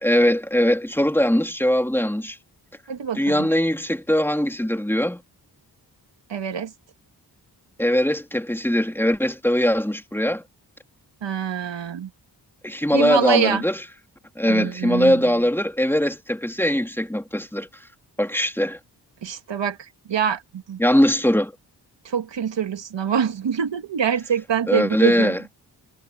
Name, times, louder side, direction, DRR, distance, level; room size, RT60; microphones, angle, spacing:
voice 1, 0.0-2.4 3.1-5.2 7.8-10.4 12.6-13.8 14.4-17.7 18.2-18.8 20.8-21.5 24.7-25.4, equal, 5° left, 2.9 m, -21 dB
voice 2, 2.9-3.5 6.3-6.7 11.2-12.1 12.9-13.6 14.4-15.3 19.2-20.8 22.0-25.4, right 7 dB, 90° right, 2.2 m, -25 dB
cardioid pair, 75°, 42 cm